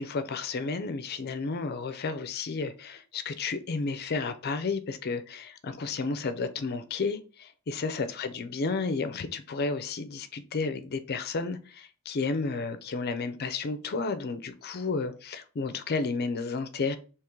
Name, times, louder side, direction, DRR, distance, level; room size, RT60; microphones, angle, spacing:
voice 1, 0.0-17.0, left 4 dB, 45° left, 0.4 m, -32 dB
3.7 x 2.9 x 4.4 m
head